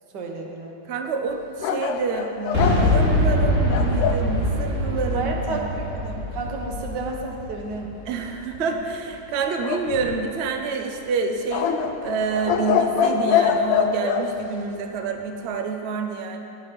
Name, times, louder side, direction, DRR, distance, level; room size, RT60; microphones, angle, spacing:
voice 1, 0.1-0.7 5.1-7.9, right 3 dB, 60° right, 1 dB, 1.7 m, -31 dB
voice 2, 0.8-5.7 8.1-16.4, right 4 dB, 80° right, 4 dB, 0.5 m, -28 dB
sound 1, 1.6-4.3 9.6-10.5 11.5-14.3, left 7 dB, 75° left, 1.4 m, -24 dB
Boom, 2.5-8.4, left 1 dB, 40° right, 2.6 m, -23 dB
10.5 x 9.0 x 5.2 m, 2.8 s
omnidirectional pair, 2.2 m